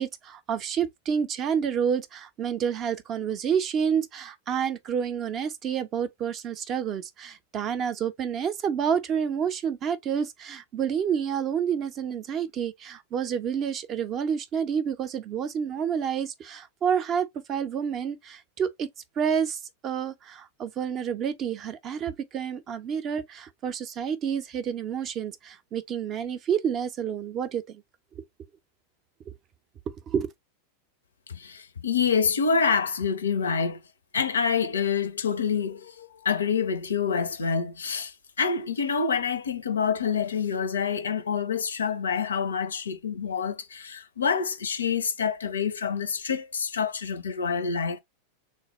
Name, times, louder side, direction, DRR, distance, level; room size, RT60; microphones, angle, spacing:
voice 1, 0.0-18.9 19.2-27.8 28.2-28.3 29.3-29.4 29.9-30.3, right 7 dB, 30° right, 0.5 m, -29 dB
voice 2, 31.3-33.8 34.1-48.0, left 6 dB, 70° left, 0.4 m, -27 dB
3.4 x 2.2 x 3.0 m
figure-of-eight pair, 90°, 0 cm